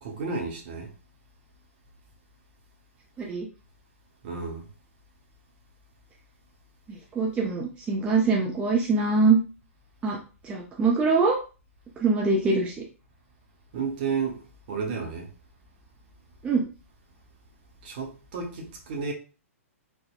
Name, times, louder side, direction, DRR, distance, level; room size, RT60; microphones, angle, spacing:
voice 1, 0.0-0.9 4.2-4.7 13.7-15.3 17.8-19.1, right 5 dB, 40° right, 0.8 m, -32 dB
voice 2, 6.9-9.4 10.0-10.2 10.4-11.4 12.0-12.8 16.4-16.7, right 4 dB, 15° right, 0.4 m, -23 dB
3.4 x 2.1 x 2.3 m
figure-of-eight pair, 115°, 8 cm